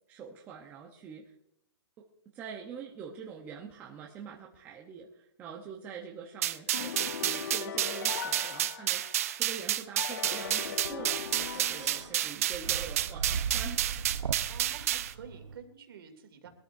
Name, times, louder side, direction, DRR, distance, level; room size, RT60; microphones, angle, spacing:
voice 1, 0.1-1.3 2.0-2.1 2.3-13.8, right 6 dB, 10° right, -1 dB, 0.9 m, -45 dB
sound 1, 6.4-15.1, right 12 dB, 30° right, 0.4 m, -31 dB
sound 2, 6.7-9.4 10.0-12.5, left 8 dB, 40° left, 0.5 m, -40 dB
sound 3, 10.4-15.6, right 6 dB, 85° right, 0.9 m, -38 dB
voice 2, 14.5-16.5, right 7 dB, 50° right, 5 dB, 2.6 m, -49 dB
22.5 x 13.0 x 2.7 m, 0.75 s
hypercardioid pair, 170°, 15 cm